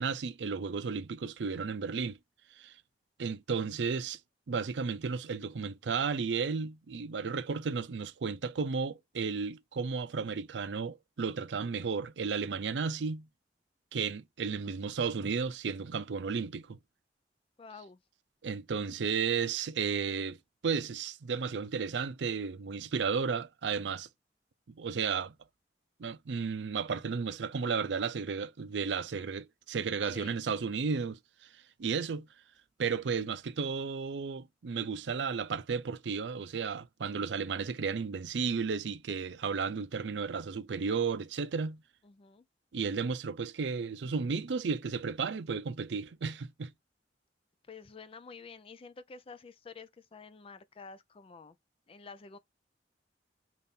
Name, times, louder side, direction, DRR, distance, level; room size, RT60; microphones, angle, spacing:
voice 1, 0.0-2.2 2.6-2.7 3.2-4.2 4.5-13.3 13.9-16.8 18.4-20.4 20.6-24.1 24.7-25.3 26.0-31.2 31.8-32.3 32.8-41.8 42.7-46.7, right 5 dB, 85° right, 0.5 m, -33 dB
voice 2, 17.6-18.0 30.0-30.4 42.0-42.5 47.7-51.6 51.9-52.4, left 4 dB, 30° left, 0.4 m, -49 dB
4.1 x 2.5 x 3.5 m
head